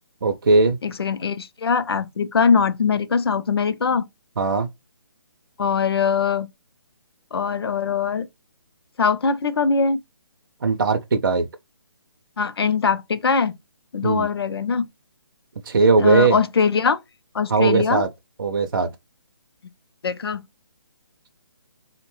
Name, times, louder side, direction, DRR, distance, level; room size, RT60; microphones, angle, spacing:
voice 1, 0.2-0.8 4.4-4.7 10.6-11.5 14.0-14.3 15.7-16.4 17.5-18.1 18.4-18.9, right 3 dB, 55° right, 0.4 m, -19 dB
voice 2, 0.8-4.0 5.6-6.5 7.3-8.3 9.0-10.0 12.4-13.6 13.9-14.9 16.0-17.0 17.3-18.0 20.0-20.4, left 5 dB, 70° left, 0.5 m, -21 dB
3.7 x 2.1 x 3.0 m
hypercardioid pair, 180°, 13 cm